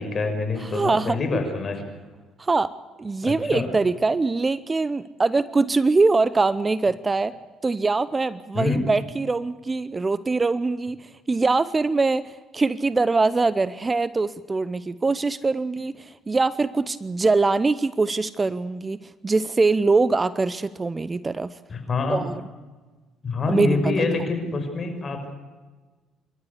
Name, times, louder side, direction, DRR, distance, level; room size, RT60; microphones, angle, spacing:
voice 1, 0.0-1.8 3.2-3.7 8.5-8.8 21.7-22.2 23.2-25.3, left 3 dB, 40° left, 6 dB, 5.9 m, -26 dB
voice 2, 0.6-1.2 2.4-2.7 3.0-7.3 7.6-21.6 22.1-22.4 23.5-23.9, right 3 dB, 25° right, 17 dB, 0.8 m, -23 dB
27.0 x 13.0 x 8.3 m, 1.3 s
hypercardioid pair, 65°, 0 cm